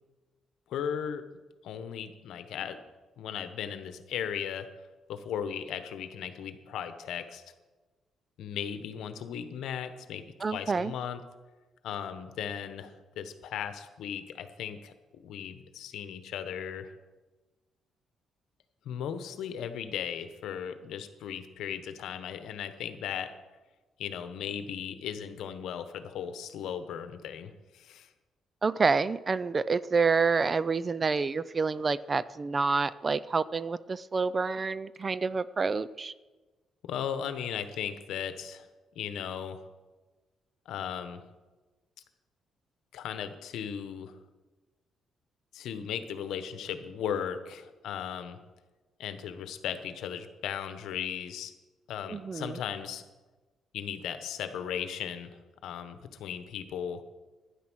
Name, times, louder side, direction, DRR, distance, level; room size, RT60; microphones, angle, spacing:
voice 1, 0.7-1.2 1.6-2.8 3.2-4.7 5.1-7.4 8.4-10.2 10.5-11.2 11.8-16.9 18.8-23.3 24.0-28.1 36.8-38.7 38.9-39.6 40.6-41.2 42.9-44.2 45.5-48.4 49.0-51.5 51.9-53.0 53.7-57.0, left 8 dB, 80° left, 9 dB, 1.1 m, -37 dB
voice 2, 10.4-10.9 28.6-36.1 52.1-52.6, right 4 dB, 35° right, 18 dB, 0.5 m, -28 dB
12.0 x 10.0 x 6.3 m, 1.2 s
cardioid pair, 85°, 0 cm